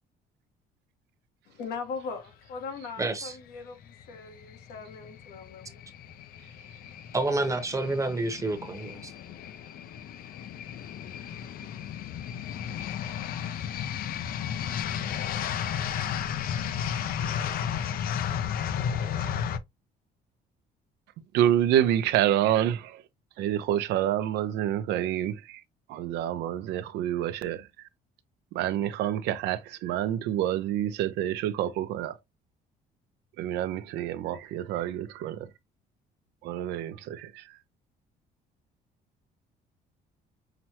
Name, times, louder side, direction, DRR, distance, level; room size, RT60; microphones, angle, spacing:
voice 1, 1.5-5.8, left 5 dB, 80° left, 1.3 m, -40 dB
voice 2, 3.0-3.3 7.1-9.1, right 2 dB, 20° right, 0.9 m, -29 dB
sound 1, 3.8-19.6, left 8 dB, 60° left, 0.5 m, -33 dB
voice 3, 21.3-22.8 23.4-25.3 25.9-27.6 28.5-32.1 33.4-35.4 36.4-37.3, right 11 dB, 85° right, 0.6 m, -27 dB
5.9 x 2.1 x 2.8 m
cardioid pair, 110°, 17 cm